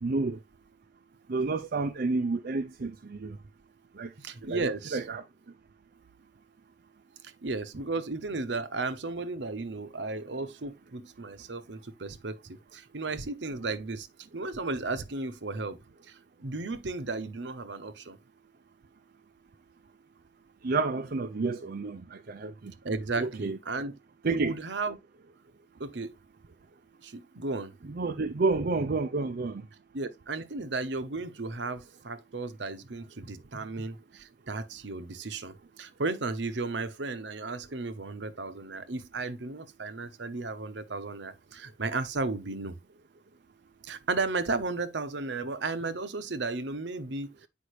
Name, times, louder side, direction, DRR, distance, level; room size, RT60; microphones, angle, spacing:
voice 1, 0.0-0.4 1.3-3.4 4.0-4.1 4.4-4.6 4.9-5.2 20.6-22.7 23.2-23.6 24.2-24.5 27.9-29.6, right 3 dB, 55° right, 0.5 m, -30 dB
voice 2, 4.2-5.0 7.2-14.1 14.3-15.8 16.1-18.2 22.8-24.0 24.2-25.0 25.8-26.1 27.0-27.7 29.9-42.7 43.8-47.5, right 3 dB, 70° right, 0.9 m, -34 dB
8.4 x 5.2 x 3.1 m
head